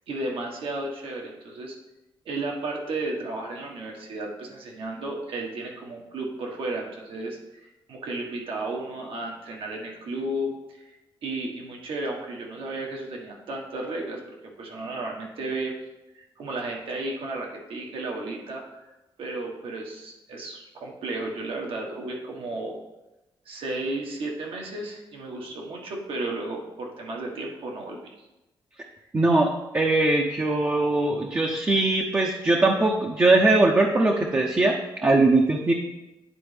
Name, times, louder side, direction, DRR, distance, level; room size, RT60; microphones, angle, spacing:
voice 1, 0.1-1.8 2.2-10.9 11.2-15.7 16.1-18.8 19.2-22.8 23.4-28.1, right 2 dB, 75° right, 0 dB, 1.4 m, -33 dB
voice 2, 29.1-35.7, right 2 dB, 25° right, 0 dB, 0.6 m, -21 dB
9.8 x 4.1 x 3.3 m, 0.99 s
cardioid pair, 120°, 9 cm